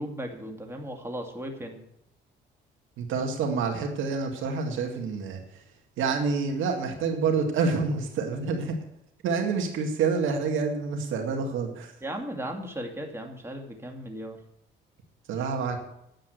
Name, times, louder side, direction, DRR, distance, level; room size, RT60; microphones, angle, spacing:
voice 1, 0.0-1.8 12.0-14.4, equal, 10° right, 2 dB, 2.3 m, -36 dB
voice 2, 3.0-5.4 6.0-8.7 9.2-11.9 15.3-15.8, right 5 dB, 85° right, 3 dB, 2.1 m, -27 dB
10.0 x 7.7 x 7.9 m, 0.78 s
cardioid pair, 90°, 20 cm